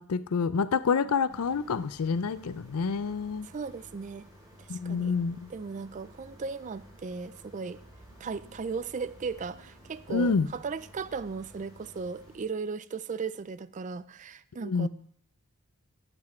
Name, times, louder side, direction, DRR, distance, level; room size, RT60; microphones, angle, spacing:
voice 1, 0.0-3.5 4.7-5.5 10.1-10.5 14.6-14.9, left 5 dB, 85° left, 15 dB, 0.5 m, -28 dB
sound 1, 1.3-12.4, equal, 20° right, 3.2 m, -53 dB
voice 2, 3.4-4.2 4.6-5.1 5.5-7.8 8.2-14.9, right 5 dB, 35° right, 16 dB, 0.4 m, -36 dB
13.5 x 8.1 x 4.4 m, 0.66 s
head